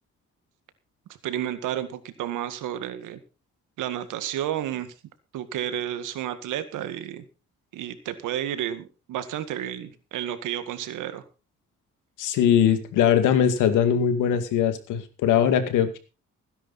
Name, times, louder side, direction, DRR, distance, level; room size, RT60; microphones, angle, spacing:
voice 1, 1.2-3.2 3.8-4.9 5.3-7.3 7.7-11.2, right 11 dB, 85° right, 11 dB, 1.9 m, -31 dB
voice 2, 12.2-16.0, left 9 dB, 90° left, 9 dB, 2.3 m, -21 dB
16.5 x 10.5 x 4.2 m, 0.32 s
cardioid pair, 90°, 30 cm